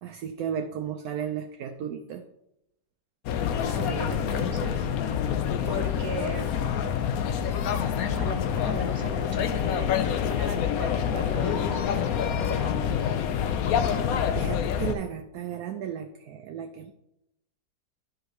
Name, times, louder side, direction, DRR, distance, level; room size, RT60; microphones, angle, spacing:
voice 1, 0.0-2.2 14.4-16.9, right 8 dB, 70° right, 6 dB, 1.0 m, -34 dB
sound 1, 3.3-15.0, left 8 dB, 70° left, 1.0 m, -27 dB
voice 2, 3.6-5.3 5.6-6.6 8.1-13.2, right 1 dB, 25° right, -2 dB, 1.7 m, -38 dB
11.5 x 5.0 x 3.1 m, 0.87 s
omnidirectional pair, 1.7 m